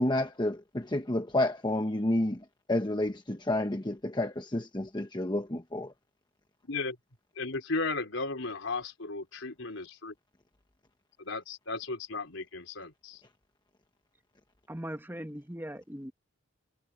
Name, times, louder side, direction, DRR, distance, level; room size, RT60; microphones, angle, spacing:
voice 1, 0.0-2.4 2.7-5.9, left 1 dB, 25° left, 1.1 m, -30 dB
voice 2, 7.4-10.1 11.2-13.2, left 3 dB, 85° left, 3.9 m, -35 dB
voice 3, 14.7-16.1, equal, 10° right, 1.4 m, -39 dB
head